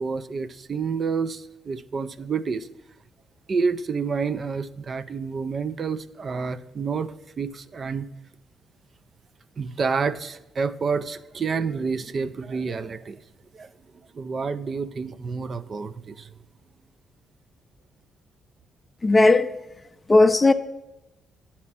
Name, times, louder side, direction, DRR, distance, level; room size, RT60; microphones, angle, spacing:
voice 1, 0.0-2.7 3.5-8.1 9.6-13.2 13.5-13.7 14.1-16.3, right 5 dB, 45° right, 0.4 m, -29 dB
voice 2, 19.0-19.6 20.1-20.5, left 2 dB, 20° left, 0.4 m, -16 dB
9.9 x 4.2 x 5.9 m
cardioid pair, 90°, 0 cm